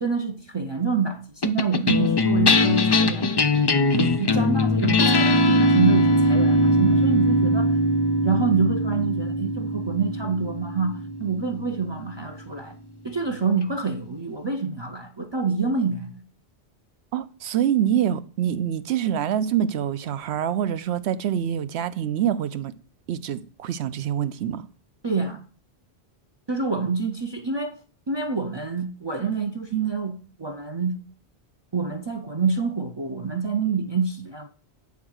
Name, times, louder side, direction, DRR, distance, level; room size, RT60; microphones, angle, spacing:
voice 1, 0.0-3.3 3.9-7.8 8.2-12.8 13.0-16.2 25.0-25.4 26.5-27.8 28.1-31.0 31.7-34.5, right 5 dB, 35° right, 0.4 m, -27 dB
sound 1, 1.4-12.0, left 1 dB, 40° left, 0.3 m, -21 dB
voice 2, 17.1-22.7 23.1-24.7, right 10 dB, 80° right, 0.9 m, -25 dB
9.4 x 3.7 x 6.2 m
omnidirectional pair, 1.1 m